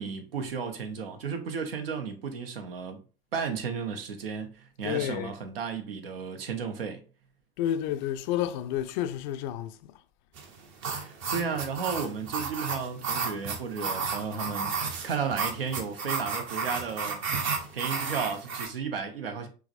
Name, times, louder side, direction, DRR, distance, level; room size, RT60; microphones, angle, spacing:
voice 1, 0.0-3.0 3.3-7.0 10.9-17.2 17.7-19.5, right 6 dB, 75° right, 0.8 m, -34 dB
voice 2, 4.8-5.3 7.6-9.9, left 11 dB, 55° left, 0.4 m, -30 dB
sound 1, 10.3-18.7, right 5 dB, 40° right, 0.9 m, -33 dB
4.7 x 3.1 x 2.5 m
figure-of-eight pair, 70°, 29 cm